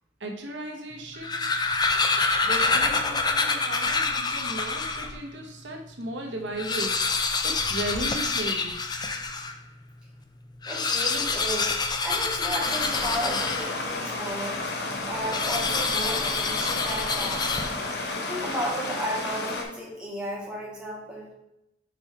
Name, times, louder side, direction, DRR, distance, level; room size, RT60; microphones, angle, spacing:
voice 1, 0.2-1.4 2.4-7.0 7.4-8.7, right 1 dB, 85° right, 2 dB, 1.1 m, -35 dB
sound 1, 1.0-5.2 5.7-5.8 6.0-6.1 6.5-9.6 10.5-14.0 15.3-18.0, left 4 dB, 25° left, 0.5 m, -27 dB
voice 2, 10.7-11.7 12.0-14.6 14.9-17.6 18.3-21.3, equal, 5° right, -5 dB, 1.8 m, -33 dB
Stream, 12.6-19.6, left 2 dB, 65° left, 1.1 m, -32 dB
5.3 x 4.5 x 4.8 m, 0.84 s
head